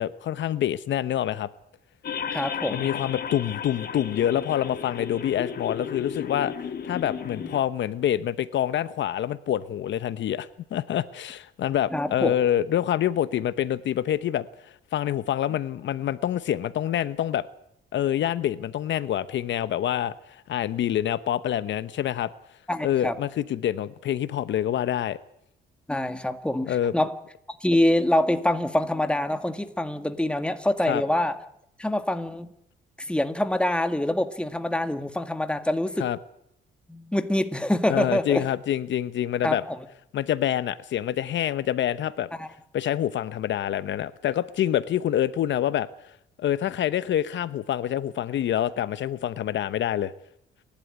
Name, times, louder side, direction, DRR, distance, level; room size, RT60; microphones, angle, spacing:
voice 1, 0.0-1.5 2.7-6.5 6.8-14.5 14.9-17.5 17.9-20.1 20.5-22.3 22.8-25.2 26.7-26.9 30.9-31.0 36.0-36.2 37.9-39.6 40.1-42.3 42.7-45.9 46.4-50.1, left 11 dB, 70° left, 14 dB, 0.9 m, -26 dB
sound 1, 2.0-7.6, left 7 dB, 50° left, 2.1 m, -34 dB
voice 2, 2.3-2.9 7.4-7.6 11.9-12.3 22.7-23.1 25.9-27.1 27.6-31.3 31.8-32.5 33.1-36.0 36.9-38.4 39.4-39.8 42.4-42.5, left 1 dB, 5° left, 8 dB, 1.9 m, -25 dB
28.5 x 12.0 x 9.8 m, 0.75 s
cardioid pair, 90°, 20 cm